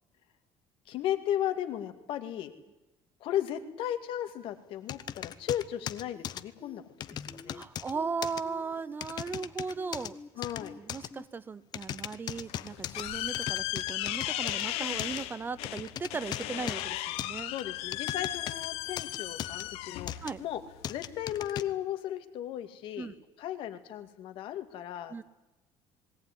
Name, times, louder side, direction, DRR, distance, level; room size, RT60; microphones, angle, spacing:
voice 1, 0.9-2.5 3.2-7.6 10.4-10.7 17.4-20.6 20.9-23.1 23.4-25.2, left 11 dB, 60° left, 8 dB, 2.2 m, -35 dB
sound 1, 4.9-6.4 7.0-7.9 8.2-8.4 9.0-10.1 10.4-11.1 11.7-13.0 13.3-14.6 15.0-15.2 15.6-16.8 17.2-18.7 19.0-19.6 20.1-20.3 20.8-21.6, left 10 dB, 45° left, 0.9 m, -38 dB
sound 2, 6.1-6.3 6.6-6.8 7.1-7.6 7.9-8.1 8.4-8.9 9.3-9.4 9.8-10.3 10.6-10.8 11.1-11.2, left 3 dB, 15° left, 1.4 m, -48 dB
voice 2, 7.5-10.2 10.8-17.5 20.2-20.4 23.0-23.1 25.1-25.2, right 5 dB, 20° right, 18 dB, 0.7 m, -37 dB
sound 3, 12.3-21.4, left 15 dB, 80° left, 1.3 m, -36 dB
20.5 x 17.5 x 10.0 m, 1.0 s
cardioid pair, 155°, 10 cm